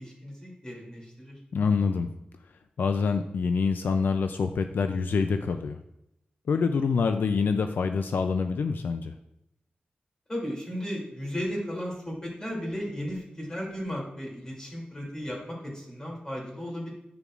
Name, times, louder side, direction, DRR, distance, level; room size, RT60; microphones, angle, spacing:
voice 1, 0.0-1.3 10.3-16.9, equal, 20° left, -2 dB, 2.7 m, -35 dB
voice 2, 1.5-2.1 2.8-5.8 6.5-9.1, left 5 dB, 80° left, 8 dB, 0.4 m, -26 dB
8.7 x 6.7 x 2.4 m, 0.83 s
wide cardioid pair, 105°, 3 cm